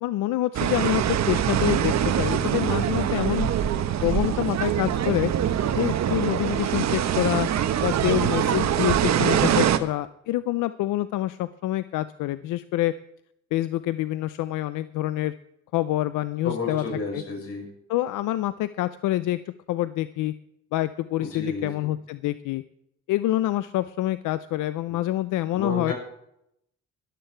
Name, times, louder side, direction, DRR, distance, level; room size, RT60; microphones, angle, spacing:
voice 1, 0.0-3.5 4.0-5.3 5.7-7.5 7.8-12.9 13.5-15.3 15.7-16.8 17.1-17.2 17.9-19.4 19.7-20.3 20.7-22.6 23.1-25.9, left 15 dB, 85° left, 14 dB, 0.6 m, -26 dB
sound 1, 0.5-9.8, right 9 dB, 65° right, 1.0 m, -24 dB
voice 2, 16.4-17.7 21.2-21.9 25.5-25.9, left 3 dB, 50° left, 1 dB, 6.0 m, -31 dB
13.5 x 11.5 x 4.5 m, 0.76 s
cardioid pair, 90°, 30 cm